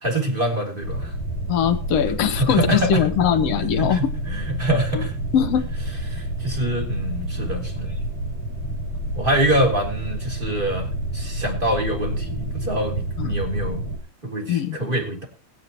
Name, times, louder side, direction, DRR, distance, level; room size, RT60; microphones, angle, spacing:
voice 1, 0.0-1.1 2.4-3.1 3.8-5.2 6.1-8.0 9.1-13.8 14.3-15.2, right 1 dB, 15° right, 2 dB, 3.1 m, -25 dB
sound 1, 0.8-14.0, right 1 dB, 60° right, 4.9 m, -29 dB
voice 2, 1.5-4.1 4.9-5.1 5.3-5.7 13.2-13.3 14.5-14.8, left 8 dB, 65° left, 10 dB, 1.9 m, -21 dB
21.5 x 9.4 x 3.0 m, 0.33 s
omnidirectional pair, 3.5 m